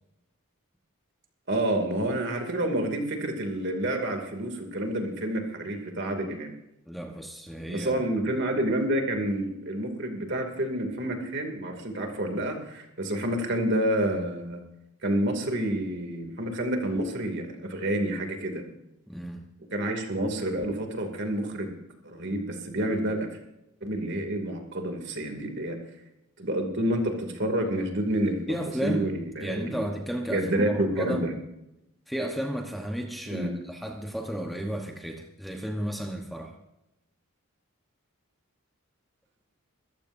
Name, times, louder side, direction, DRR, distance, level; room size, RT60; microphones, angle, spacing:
voice 1, 1.5-6.5 7.7-14.6 15.0-18.6 19.7-21.8 22.0-23.3 23.8-25.8 26.4-29.8 30.3-31.3 33.3-33.5, right 1 dB, 55° right, 4 dB, 2.6 m, -29 dB
voice 2, 6.9-8.1 19.1-19.5 28.5-29.1 29.4-31.2 32.1-36.6, equal, ahead, 2 dB, 1.1 m, -33 dB
23.0 x 14.5 x 2.7 m, 0.87 s
head